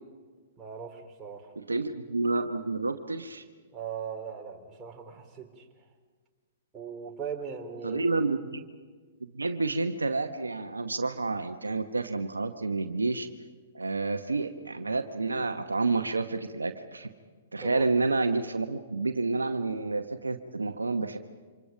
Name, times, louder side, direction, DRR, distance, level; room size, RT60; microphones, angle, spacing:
voice 1, 0.6-1.5 3.7-5.5 6.7-8.0 17.6-17.9, right 6 dB, 20° right, 1 dB, 3.3 m, -39 dB
voice 2, 1.5-3.4 7.8-8.6 9.3-13.3 13.7-17.1 17.5-21.2, right 3 dB, 85° right, 8 dB, 1.0 m, -29 dB
27.5 x 26.0 x 5.2 m, 1.5 s
figure-of-eight pair, 115°, 0 cm